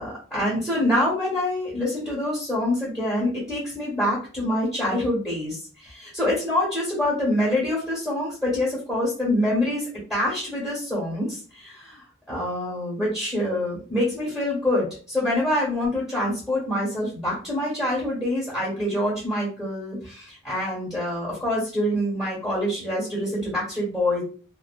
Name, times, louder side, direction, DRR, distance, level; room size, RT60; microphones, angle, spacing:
voice 1, 0.0-24.2, left 1 dB, ahead, -7 dB, 1.1 m, -26 dB
2.6 x 2.1 x 2.3 m, 0.40 s
head